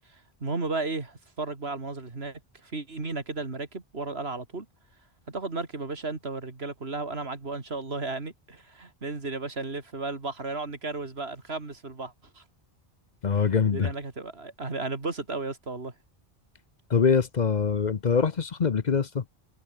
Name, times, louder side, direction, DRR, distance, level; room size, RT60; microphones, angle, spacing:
voice 1, 0.1-4.7 5.3-12.4 13.3-15.9, right 3 dB, 80° right, 3.1 m, -34 dB
voice 2, 13.2-13.9 16.9-19.2, left 6 dB, 45° left, 0.9 m, -24 dB
omnidirectional pair, 1.0 m